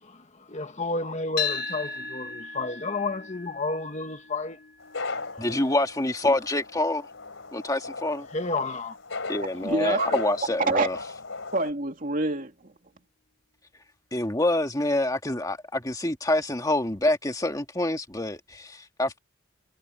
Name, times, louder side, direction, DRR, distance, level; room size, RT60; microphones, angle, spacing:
voice 1, 0.0-4.6 5.3-5.5 8.3-9.0, left 3 dB, 35° left, 1.6 m, -31 dB
sound 1, 1.4-9.5, left 6 dB, 55° left, 3.8 m, -38 dB
sound 2, 4.8-11.7, left 3 dB, 90° left, 3.3 m, -38 dB
voice 2, 5.4-7.1 7.5-8.3 9.3-11.0 14.1-19.2, left 1 dB, 20° left, 1.9 m, -26 dB
voice 3, 9.6-10.2 10.7-10.9 11.5-12.7, right 2 dB, 45° right, 2.6 m, -26 dB
head